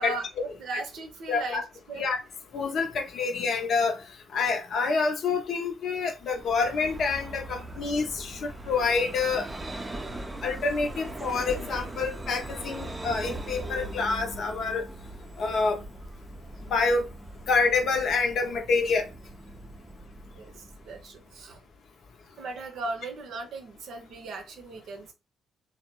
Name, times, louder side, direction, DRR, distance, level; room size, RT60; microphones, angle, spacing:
voice 1, 0.0-1.6 1.9-2.1 20.4-21.6 22.4-25.1, right 3 dB, 60° right, 0.7 m, -37 dB
voice 2, 1.3-1.6 2.0-2.2 2.5-4.0 4.3-9.5 10.4-14.8 15.4-15.8 16.7-17.1 17.5-19.1, left 4 dB, 55° left, 0.6 m, -27 dB
Vehicle, 6.2-21.6, right 1 dB, 20° right, 0.5 m, -40 dB
3.2 x 2.1 x 2.9 m
figure-of-eight pair, 40°, 0 cm